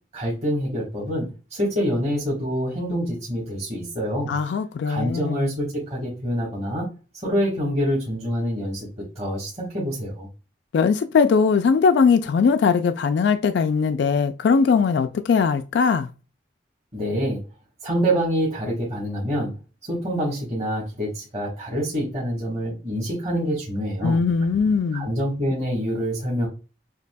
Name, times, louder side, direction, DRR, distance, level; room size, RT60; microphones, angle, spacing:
voice 1, 0.1-4.3 4.8-6.9 7.2-10.3 16.9-17.4 17.8-19.5 19.9-24.2 24.9-26.5, equal, 35° right, 1.4 m, -26 dB
voice 2, 4.3-5.5 10.7-16.1 24.0-25.1, left 5 dB, 70° left, 0.3 m, -20 dB
6.5 x 2.7 x 2.2 m
head